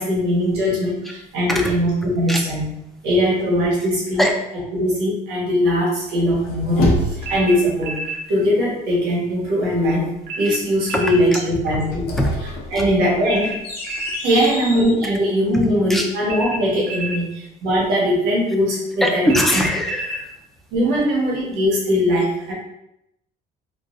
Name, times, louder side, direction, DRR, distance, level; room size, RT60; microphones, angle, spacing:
voice 1, 0.0-2.7 3.0-4.3 4.7-8.0 8.3-10.1 10.4-12.1 12.7-13.6 14.2-19.3 20.7-22.5, equal, 90° right, -4 dB, 1.3 m, -20 dB
sound 1, 6.2-7.7 11.7-15.0, left 1 dB, 70° left, 0.7 m, -27 dB
sound 2, 7.2-8.2 10.3-11.2 13.3-14.2 16.3-17.2 19.3-20.2, right 1 dB, 70° right, 0.7 m, -29 dB
voice 2, 10.9-11.4 12.2-12.3 12.8-12.9 14.4-14.5 15.5-16.1 19.0-20.3, equal, ahead, 1 dB, 0.4 m, -22 dB
3.8 x 2.3 x 2.5 m, 0.82 s
cardioid pair, 110°, 17 cm